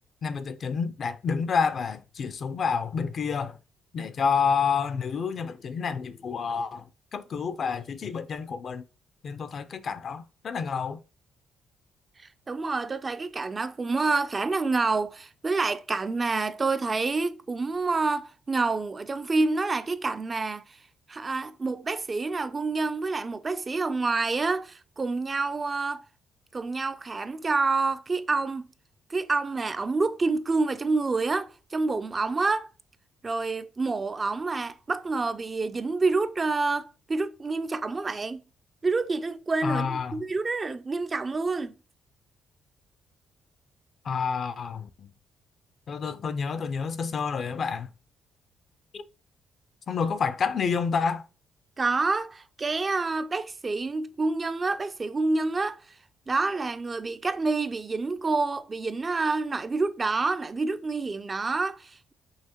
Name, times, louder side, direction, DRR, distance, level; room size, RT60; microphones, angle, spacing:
voice 1, 0.2-3.6 3.9-8.8 9.2-11.0 39.6-40.2 44.0-45.1 45.9-47.9 48.9-49.0 49.9-51.3, left 6 dB, 55° left, 0.4 m, -29 dB
voice 2, 12.2-20.8 21.1-26.0 26.5-28.7 29.1-32.7 33.2-38.4 38.8-41.7 51.8-55.8 56.3-62.1, right 3 dB, 30° right, 0.3 m, -28 dB
5.6 x 2.9 x 2.8 m
cardioid pair, 90°, 0 cm